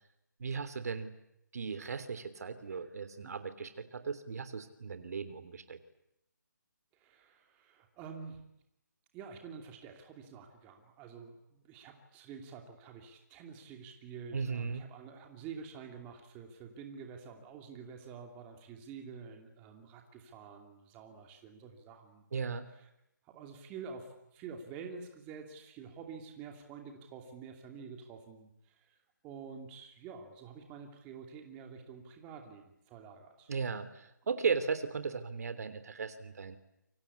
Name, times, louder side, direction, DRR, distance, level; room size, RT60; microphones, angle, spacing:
voice 1, 0.4-1.1 1.5-5.8 14.3-14.9 22.3-22.7 33.5-36.6, right 5 dB, 55° right, 11 dB, 3.4 m, -36 dB
voice 2, 6.9-8.4 9.1-22.4 23.2-29.0 29.2-33.5, right 6 dB, 15° right, 4 dB, 2.8 m, -48 dB
28.5 x 24.5 x 8.5 m, 0.82 s
hypercardioid pair, 165°, 10 cm